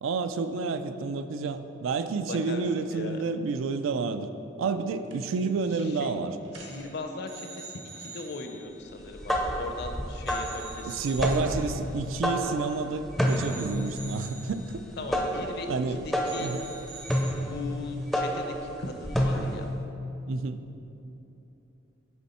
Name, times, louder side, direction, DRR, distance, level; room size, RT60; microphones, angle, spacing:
voice 1, 0.0-4.3 4.6-6.3 10.8-14.8 15.7-16.0 16.4-16.6 20.2-20.6, right 4 dB, 90° right, 10 dB, 0.4 m, -30 dB
voice 2, 2.2-2.6 2.9-3.2 5.7-6.2 6.5-11.1 15.0-16.5 17.4-19.7, left 3 dB, 55° left, 5 dB, 0.5 m, -39 dB
sound 1, 5.1-5.5 5.8-6.0 6.5-9.8 10.3-12.9 13.3-15.9 16.3-17.3, right 4 dB, 75° right, 1.0 m, -47 dB
sound 2, 9.0-19.8, equal, ahead, 0.4 m, -30 dB
9.4 x 3.5 x 4.2 m, 3.0 s
head